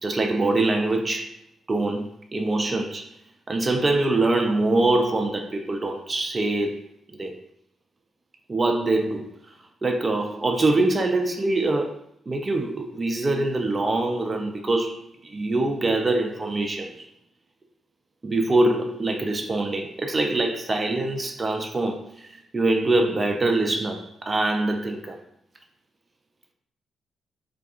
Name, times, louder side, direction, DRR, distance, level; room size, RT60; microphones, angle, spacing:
voice 1, 0.0-1.3 1.7-3.1 3.5-6.9 7.2-7.3 8.5-9.3 9.8-12.0 12.3-17.1 18.2-25.2, right 2 dB, 25° right, 0.3 m, -24 dB
2.6 x 2.5 x 2.4 m
wide cardioid pair, 145°, 0 cm